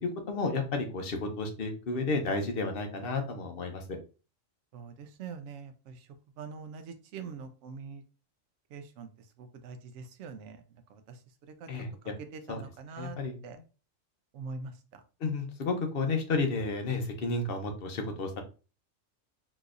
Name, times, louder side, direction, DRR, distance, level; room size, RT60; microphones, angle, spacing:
voice 1, 0.0-3.8 11.7-11.9 12.5-12.6 13.0-13.4 15.2-18.4, left 3 dB, 55° left, 4 dB, 0.8 m, -32 dB
voice 2, 5.2-5.7 6.4-8.0 8.7-9.1 9.6-10.5 12.9-13.2 13.4-13.5 14.4-14.7, right 5 dB, 70° right, 8 dB, 0.9 m, -42 dB
4.0 x 2.7 x 2.4 m, 0.34 s
omnidirectional pair, 1.4 m